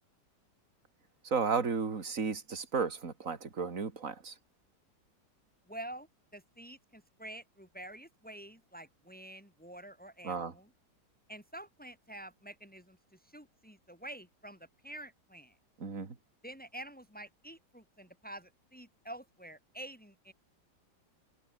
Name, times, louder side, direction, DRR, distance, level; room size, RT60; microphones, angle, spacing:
voice 1, 1.2-4.3 10.2-10.5 15.8-16.1, right 5 dB, 45° right, 2.9 m, -33 dB
voice 2, 5.7-6.1 6.3-10.7 11.3-15.6 16.4-20.3, right 1 dB, 5° left, 6.6 m, -48 dB
omnidirectional pair, 1.9 m